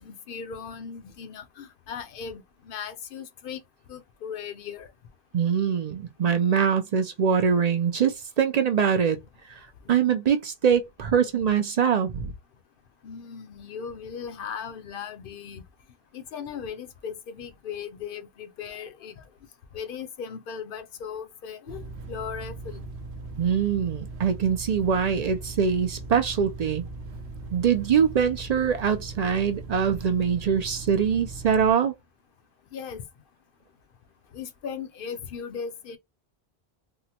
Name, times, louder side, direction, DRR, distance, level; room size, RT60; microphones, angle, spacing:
voice 1, 0.0-3.6 3.9-4.9 13.0-15.6 16.1-19.2 19.7-21.8 22.1-22.8 32.7-33.0 34.3-36.0, left 7 dB, 60° left, 0.7 m, -37 dB
voice 2, 5.3-9.2 9.9-12.3 23.4-26.8 27.5-31.9, right 7 dB, 55° right, 0.5 m, -23 dB
sound 1, 21.7-31.7, right 3 dB, 80° right, 0.8 m, -39 dB
3.6 x 2.0 x 2.8 m
omnidirectional pair, 1.1 m